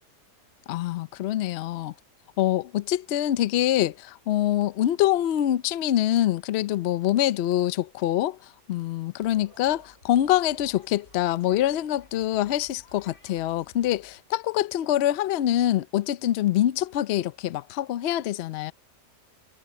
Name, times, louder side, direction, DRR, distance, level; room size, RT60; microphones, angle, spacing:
voice 1, 0.7-1.9 2.4-18.7, left 12 dB, 65° left, 0.6 m, -25 dB
sound 1, 9.2-14.2, left 3 dB, 45° left, 4.0 m, -56 dB
omnidirectional pair, 1.7 m